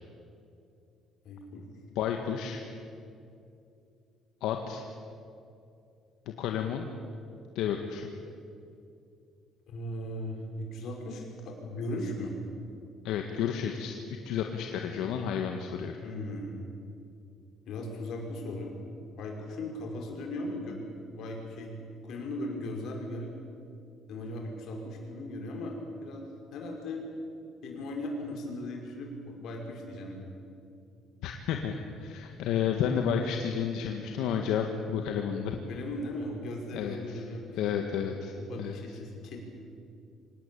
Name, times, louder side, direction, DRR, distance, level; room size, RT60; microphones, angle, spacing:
voice 1, 1.2-1.6 9.7-12.4 16.0-16.6 17.7-18.7 19.2-21.7 22.0-23.3 24.1-27.1 27.6-30.2 35.7-37.6 38.4-39.4, left 1 dB, 55° left, 1 dB, 5.5 m, -38 dB
voice 2, 2.0-2.6 4.4-4.9 6.4-6.9 7.6-8.1 13.0-14.0 14.2-15.9 31.2-35.6 36.7-37.2 37.6-38.8, left 8 dB, 80° left, 3 dB, 1.7 m, -31 dB
25.5 x 19.0 x 8.7 m, 2.5 s
cardioid pair, 175°, 0 cm